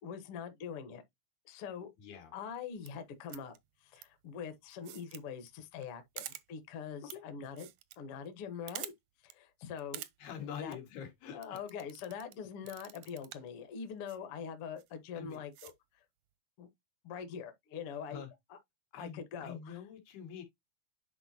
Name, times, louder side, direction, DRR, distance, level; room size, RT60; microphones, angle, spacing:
voice 1, 0.0-1.0 1.4-1.9 2.3-3.5 3.8-7.7 8.0-8.9 9.2-10.0 10.4-10.8 11.3-15.7 16.6-16.7 17.0-18.2 18.5-18.6 19.0-19.6, left 7 dB, 65° left, 1.4 m, -43 dB
voice 2, 2.0-2.3 7.0-7.2 10.2-11.6 15.2-15.4 18.1-18.3 18.9-20.4, left 8 dB, 85° left, 3.8 m, -45 dB
sound 1, 2.7-2.9 3.3-3.6 3.9-4.0 4.7-5.2 5.5-5.6 5.8-5.9 6.2-6.4 7.1-7.2 7.4-8.0 8.3-8.4 8.7-8.9 9.3-9.4 9.8-10.1 10.5-10.7 11.4-12.3 12.7-13.5 14.1-14.2 14.8-14.9 15.3-15.7, right 15 dB, 80° right, 1.8 m, -46 dB
10.0 x 4.0 x 2.8 m
omnidirectional pair, 4.4 m